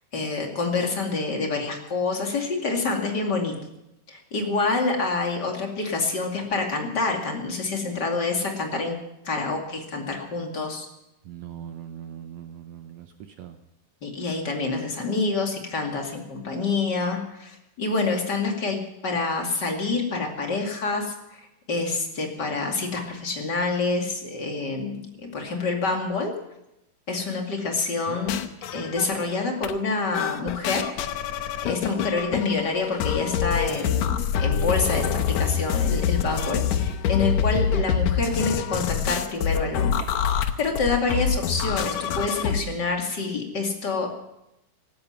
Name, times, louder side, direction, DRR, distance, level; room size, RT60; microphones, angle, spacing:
voice 1, 0.1-3.5 4.1-9.0 9.2-10.9 14.0-26.3 27.1-28.4 28.7-30.9 31.1-31.2 31.6-40.0 40.3-44.1, left 3 dB, 35° left, 1 dB, 2.6 m, -27 dB
voice 2, 11.3-13.6, right 10 dB, 70° right, 7 dB, 1.8 m, -40 dB
sound 1, 28.1-29.3 29.6-29.8 30.1-42.6, left 8 dB, 70° left, 1.9 m, -26 dB
17.5 x 13.0 x 5.9 m, 0.87 s
omnidirectional pair, 3.9 m